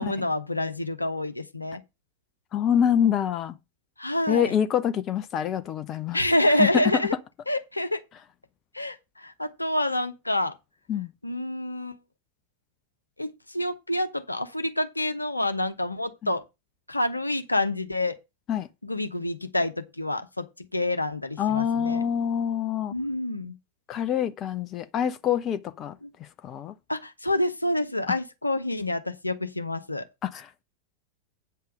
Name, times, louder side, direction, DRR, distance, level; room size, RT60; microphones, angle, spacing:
voice 1, 0.0-1.8 4.0-4.5 6.1-7.1 7.5-8.0 8.7-10.5 11.2-12.0 13.2-16.4 16.9-18.2 18.8-22.1 22.9-23.5 26.0-26.1 26.9-30.0, left 1 dB, 85° left, 1.0 m, -27 dB
voice 2, 2.5-3.5 4.3-6.2 6.6-7.0 10.9-11.1 16.2-16.3 18.5-18.7 21.4-22.9 23.9-26.0 26.4-26.7 30.2-30.6, left 9 dB, 30° left, 0.7 m, -26 dB
8.9 x 5.7 x 6.4 m
figure-of-eight pair, 90°, 0 cm